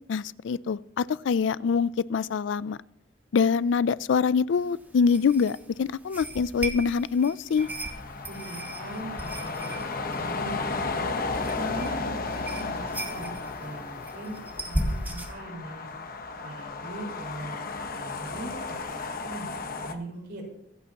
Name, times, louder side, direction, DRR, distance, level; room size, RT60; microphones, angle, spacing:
voice 1, 0.1-2.8 3.3-7.7, left 6 dB, 80° left, 19 dB, 0.4 m, -25 dB
sound 1, 4.5-15.3, right 1 dB, 10° right, 1.7 m, -37 dB
sound 2, 7.6-19.9, left 3 dB, 50° left, 1.0 m, -34 dB
voice 2, 8.3-11.2 11.5-15.9 16.4-20.4, right 1 dB, 65° right, -1 dB, 5.0 m, -41 dB
24.5 x 8.4 x 2.9 m, 0.77 s
head